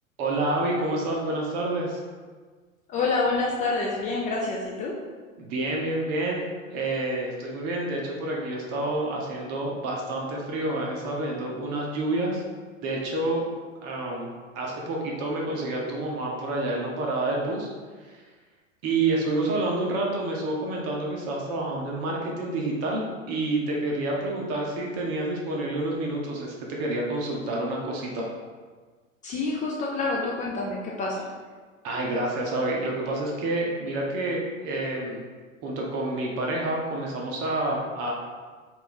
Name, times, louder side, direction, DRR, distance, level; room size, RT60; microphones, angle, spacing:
voice 1, 0.2-2.0 5.4-6.4 6.7-12.4 12.8-13.4 13.8-17.7 18.0-18.2 18.8-28.3 31.8-35.2 35.6-38.1, right 2 dB, 35° right, -2 dB, 0.9 m, -28 dB
voice 2, 2.9-5.0 29.2-31.3, left 3 dB, 20° left, -3 dB, 0.4 m, -27 dB
5.4 x 2.6 x 3.8 m, 1.5 s
figure-of-eight pair, 95°, 40 cm